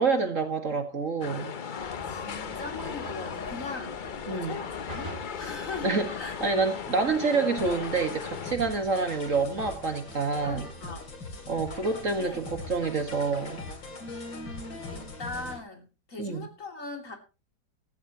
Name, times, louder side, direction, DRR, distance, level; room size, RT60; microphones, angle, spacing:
voice 1, 0.0-1.6 4.3-4.6 5.8-6.1 6.4-10.7 11.5-13.7 16.2-16.5, right 4 dB, 45° right, 2.1 m, -27 dB
sound 1, 1.2-8.5, left 7 dB, 70° left, 0.4 m, -37 dB
voice 2, 1.7-4.0 4.3-6.3 10.4-11.1 12.0-12.5 14.0-17.2, left 3 dB, 45° left, 3.3 m, -40 dB
sound 2, 1.8-7.3, right 1 dB, 25° right, 2.4 m, -46 dB
sound 3, 7.6-15.6, left 3 dB, 90° left, 3.8 m, -41 dB
16.0 x 14.5 x 3.0 m
omnidirectional pair, 1.9 m